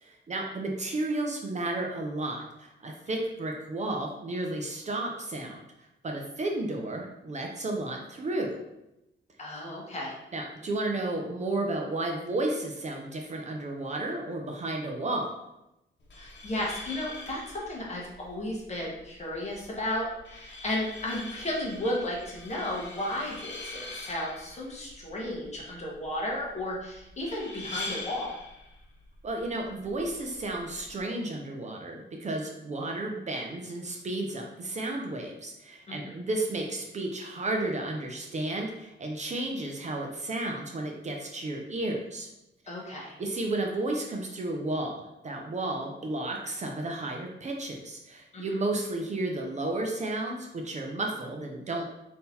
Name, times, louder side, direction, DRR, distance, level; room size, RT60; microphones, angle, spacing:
voice 1, 0.0-8.6 10.3-15.4 29.2-42.3 43.2-51.8, right 2 dB, 35° right, 1 dB, 0.5 m, -32 dB
voice 2, 9.4-10.2 16.2-28.4 35.9-36.2 42.7-43.1 48.3-48.4, left 1 dB, 35° left, -3 dB, 1.0 m, -34 dB
sound 1, 16.0-31.0, left 2 dB, 70° left, 0.9 m, -44 dB
3.8 x 2.8 x 4.1 m, 0.89 s
wide cardioid pair, 175°, 20 cm